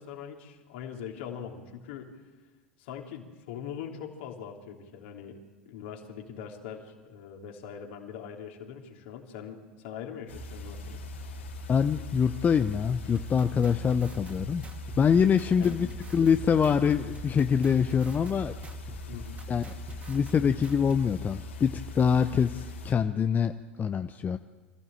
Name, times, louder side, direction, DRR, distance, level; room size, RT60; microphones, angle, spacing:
voice 1, 0.0-2.1 2.8-5.4 5.6-11.0 15.5-15.8 19.1-19.4, left 8 dB, 65° left, 1 dB, 3.2 m, -42 dB
sound 1, 10.3-23.0, left 1 dB, 80° left, 4.1 m, -40 dB
voice 2, 11.7-14.6 15.0-15.9 16.1-18.5 19.5-19.6 20.1-23.5 23.8-24.4, left 7 dB, 25° left, 9 dB, 0.8 m, -24 dB
sound 2, 13.1-21.0, right 1 dB, 20° right, 2.7 m, -46 dB
26.0 x 15.0 x 7.7 m, 1.3 s
figure-of-eight pair, 80°, 6 cm